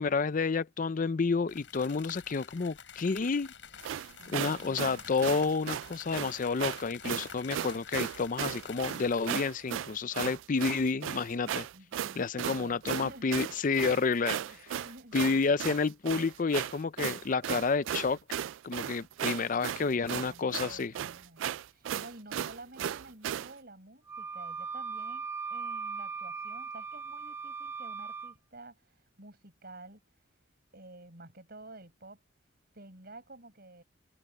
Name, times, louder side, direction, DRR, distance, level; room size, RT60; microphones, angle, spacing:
voice 1, 0.0-3.5 4.3-11.7 12.2-14.4 15.1-18.2 18.6-20.9, left 4 dB, 45° left, 0.5 m, -30 dB
sound 1, 1.5-9.4, left 7 dB, 70° left, 7.2 m, -49 dB
sound 2, 3.8-23.5, right 10 dB, 80° right, 0.3 m, -36 dB
voice 2, 4.2-5.0 11.7-13.4 14.4-15.2 19.5-30.0 30.7-32.2 32.7-33.8, right 2 dB, 55° right, 7.2 m, -51 dB
Wind instrument woodwind instrument, 24.1-28.3, right 5 dB, 10° right, 0.6 m, -39 dB
head